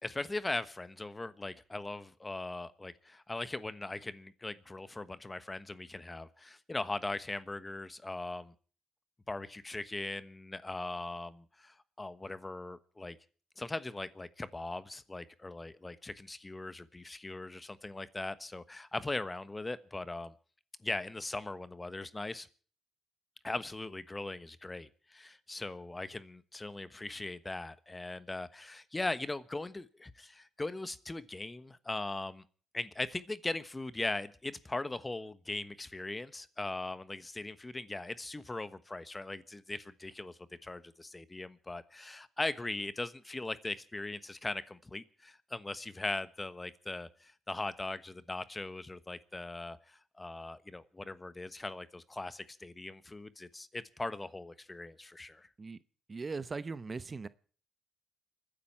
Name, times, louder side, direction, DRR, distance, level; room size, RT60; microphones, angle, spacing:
voice 1, 0.0-8.5 9.3-13.2 13.6-20.3 20.8-22.5 23.4-32.4 32.7-55.5, left 2 dB, 25° left, 1.2 m, -40 dB
voice 2, 56.1-57.3, right 4 dB, 40° right, 0.9 m, -39 dB
29.5 x 10.0 x 4.6 m
supercardioid pair, 55°, 0 cm